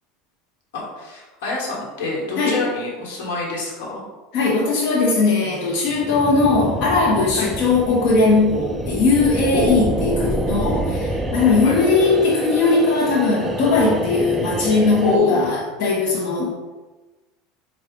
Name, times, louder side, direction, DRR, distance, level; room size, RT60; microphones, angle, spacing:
voice 1, 0.7-4.0 7.3-7.5 9.5-9.8 11.6-11.8 15.0-15.5, left 3 dB, 85° left, -3 dB, 1.3 m, -25 dB
voice 2, 4.3-16.5, left 3 dB, 55° left, -5 dB, 0.9 m, -19 dB
sound 1, 5.9-15.2, right 1 dB, 10° right, 0.3 m, -27 dB
4.5 x 2.4 x 3.6 m, 1.2 s
supercardioid pair, 135°, 0 cm